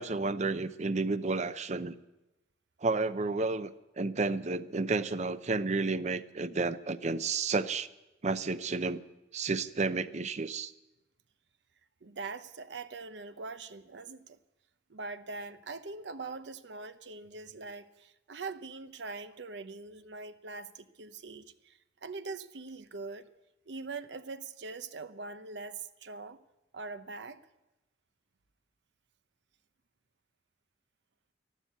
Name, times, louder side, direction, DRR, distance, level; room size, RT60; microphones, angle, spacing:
voice 1, 0.0-2.0 2.8-7.9 8.2-9.0 9.3-10.7, right 3 dB, 40° right, 13 dB, 0.6 m, -31 dB
voice 2, 12.0-14.4 14.9-23.3 23.7-26.4 26.7-27.4, right 3 dB, 80° right, 11 dB, 0.8 m, -42 dB
13.0 x 11.5 x 8.2 m, 0.97 s
head